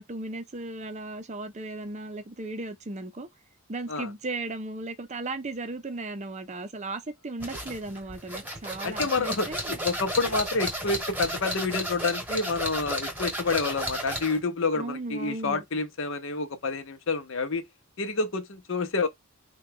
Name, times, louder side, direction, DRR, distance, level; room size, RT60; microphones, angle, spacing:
voice 1, 0.0-3.3 3.7-9.8 14.7-15.6, right 2 dB, 30° right, 0.5 m, -36 dB
sound 1, 7.4-14.4, equal, 5° right, 1.1 m, -33 dB
voice 2, 8.8-17.7 18.0-19.1, left 3 dB, 60° left, 0.7 m, -28 dB
3.8 x 2.3 x 3.6 m
head